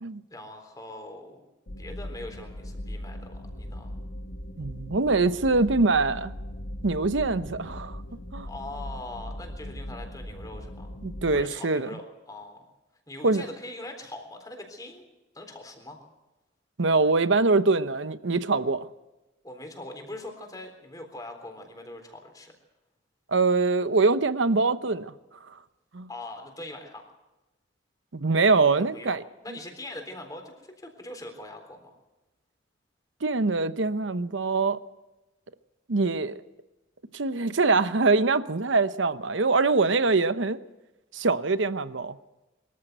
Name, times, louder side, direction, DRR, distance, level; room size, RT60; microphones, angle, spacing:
voice 1, 0.3-1.4 1.8-3.9 8.5-10.9 11.3-12.7 13.1-15.1 15.3-16.0 19.4-22.5 26.1-27.0 28.8-31.9, left 2 dB, 20° left, 3.8 m, -42 dB
sound 1, 1.7-11.4, left 1 dB, 60° left, 1.5 m, -39 dB
voice 2, 4.6-6.3 6.8-8.0 8.3-8.5 11.0-11.9 13.2-13.4 16.8-18.9 23.3-25.1 25.9-26.1 28.1-29.2 33.2-34.8 35.9-36.4 37.1-40.6 41.1-42.1, right 3 dB, 75° right, 0.9 m, -23 dB
23.0 x 14.0 x 8.0 m
head